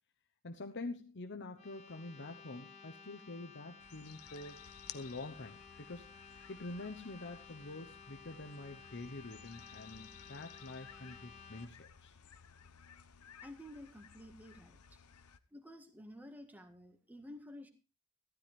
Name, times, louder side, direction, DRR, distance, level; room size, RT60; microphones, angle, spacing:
voice 1, 0.4-4.6 4.9-6.1 6.5-12.2, left 2 dB, 50° left, 6 dB, 1.0 m, -46 dB
sound 1, 1.6-11.7, left 5 dB, 30° left, 2.1 m, -56 dB
sound 2, 3.8-15.4, left 8 dB, 85° left, 0.9 m, -57 dB
voice 2, 13.4-15.0 15.5-17.7, left 1 dB, 10° right, 6 dB, 1.7 m, -52 dB
15.0 x 13.5 x 3.4 m, 0.28 s
head